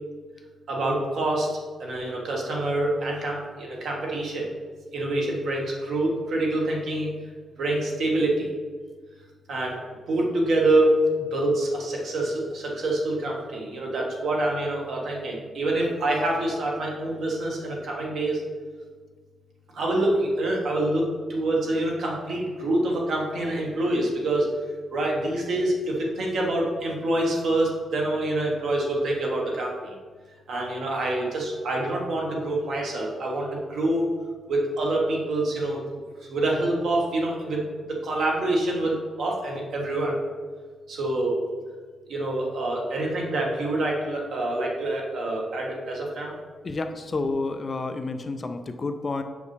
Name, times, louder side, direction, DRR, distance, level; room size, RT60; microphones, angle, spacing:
voice 1, 0.7-1.5 1.8-4.5 4.9-7.1 7.6-8.5 9.5-9.8 10.1-11.0 11.3-18.4 19.7-24.5 24.9-29.9 30.5-34.1 34.5-35.8 36.3-40.1 40.9-41.4 42.1-46.3, right 2 dB, 60° right, -2 dB, 1.4 m, -26 dB
voice 2, 46.6-49.2, left 3 dB, 30° left, 7 dB, 0.4 m, -30 dB
6.4 x 5.2 x 3.2 m, 1.5 s
wide cardioid pair, 155°, 0 cm